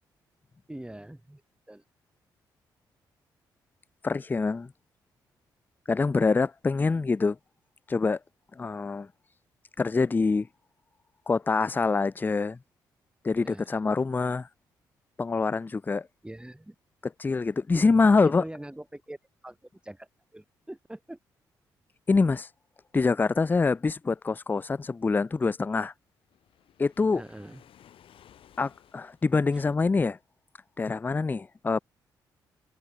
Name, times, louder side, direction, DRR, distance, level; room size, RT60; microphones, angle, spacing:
voice 1, 0.7-1.4 1.7-1.8 13.4-13.8 16.2-16.7 17.7-17.9 18.2-19.2 19.4-19.6 19.8-21.2 27.1-27.6 29.5-29.6, right 1 dB, 10° right, 6.7 m, -43 dB
voice 2, 4.0-4.7 5.9-7.4 7.9-8.2 8.6-9.1 9.8-10.5 11.3-12.6 13.2-14.5 15.2-16.1 17.2-18.4 22.1-22.5 22.9-25.9 26.8-27.2 28.6-30.2 30.8-31.8, left 4 dB, 20° left, 0.3 m, -25 dB
Waves surf, 26.2-29.7, left 10 dB, 65° left, 3.2 m, -58 dB
hypercardioid pair, 45°, 10 cm